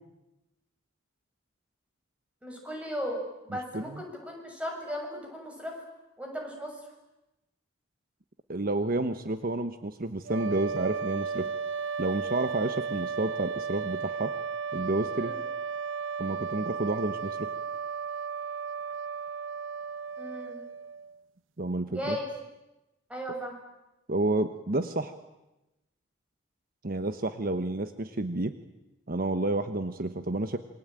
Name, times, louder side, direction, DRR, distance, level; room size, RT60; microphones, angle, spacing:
voice 1, 2.4-5.8 6.2-6.7 15.1-15.4 20.2-20.6 21.9-22.3 23.1-23.5, equal, 5° right, 1 dB, 6.8 m, -36 dB
voice 2, 8.5-11.5 12.0-14.3 14.7-15.3 16.2-17.5 21.6-22.2 24.1-25.1 26.8-28.5 29.1-30.6, right 2 dB, 50° right, 9 dB, 1.1 m, -30 dB
sound 1, 10.3-21.2, right 6 dB, 85° right, 0.9 m, -34 dB
27.0 x 23.0 x 9.0 m, 0.97 s
head